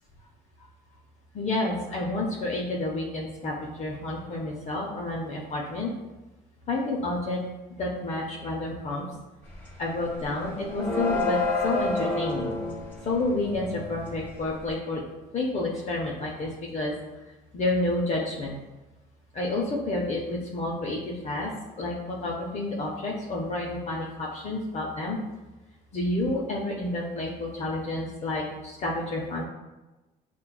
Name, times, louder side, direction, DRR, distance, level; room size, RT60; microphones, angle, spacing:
voice 1, 1.3-5.9 6.7-7.4 7.7-9.1 9.8-12.5 13.0-15.0 15.3-16.9 17.5-18.5 19.3-21.5 21.8-25.2 25.9-29.4, left 2 dB, 40° left, -2 dB, 0.5 m, -30 dB
sound 1, 9.5-9.8 10.0-14.7, left 3 dB, 15° left, 0.9 m, -30 dB
5.5 x 2.2 x 2.2 m, 1.1 s
cardioid pair, 110°, 17 cm